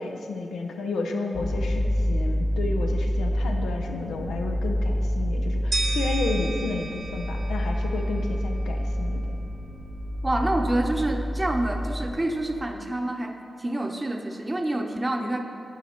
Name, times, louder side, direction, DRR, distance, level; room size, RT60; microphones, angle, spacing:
voice 1, 0.0-9.3, left 3 dB, 90° left, 3 dB, 0.5 m, -32 dB
sound 1, 1.3-12.1, equal, 30° left, 1.0 m, -27 dB
sound 2, 5.7-8.6, right 3 dB, 65° right, 0.8 m, -34 dB
voice 2, 10.2-15.4, right 1 dB, 25° right, 4 dB, 0.8 m, -27 dB
9.3 x 4.8 x 4.4 m, 2.8 s
supercardioid pair, 45°, 0 cm